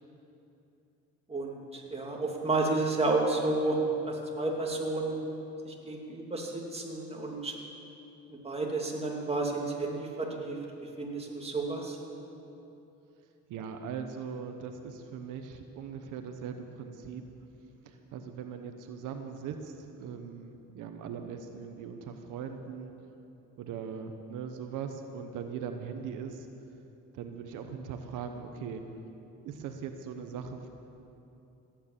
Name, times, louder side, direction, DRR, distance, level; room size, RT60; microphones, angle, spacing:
voice 1, 1.3-3.8 4.1-5.2 5.6-7.5 8.3-12.0, right 2 dB, 20° right, -1 dB, 2.6 m, -31 dB
voice 2, 13.5-17.2 17.8-22.9 23.6-26.5 27.1-28.8 29.4-30.7, right 6 dB, 90° right, 6 dB, 1.0 m, -40 dB
16.5 x 9.3 x 7.4 m, 2.8 s
cardioid pair, 90°, 30 cm